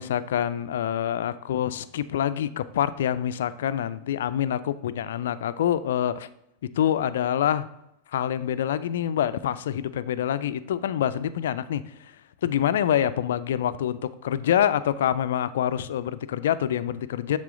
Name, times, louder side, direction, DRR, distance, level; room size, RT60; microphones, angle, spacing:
voice 1, 0.0-6.3 6.7-7.7 8.1-12.1 12.4-17.4, left 10 dB, 75° left, 14 dB, 0.3 m, -26 dB
7.4 x 3.7 x 3.7 m, 0.80 s
hypercardioid pair, 95°, 0 cm